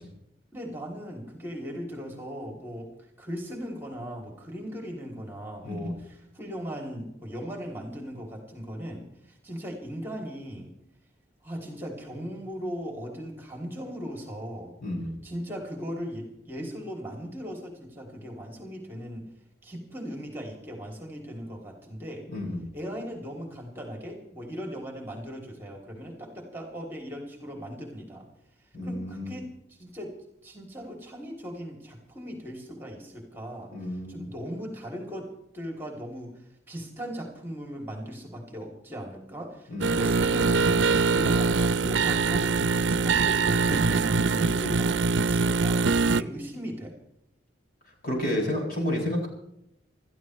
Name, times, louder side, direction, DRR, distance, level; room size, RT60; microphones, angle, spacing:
voice 1, 0.5-2.9 3.2-10.7 11.4-14.7 15.2-19.3 19.6-22.3 22.7-28.3 28.8-30.2 30.4-33.7 34.1-47.0, equal, 10° right, 1 dB, 2.9 m, -38 dB
voice 2, 5.6-6.0 14.8-15.2 22.3-22.7 28.7-29.4 33.7-34.4 39.7-40.0 47.8-49.3, left 1 dB, 50° left, -1 dB, 7.1 m, -31 dB
sound 1, 39.8-46.2, right 4 dB, 85° right, 0.6 m, -23 dB
28.0 x 13.5 x 3.2 m, 0.80 s
head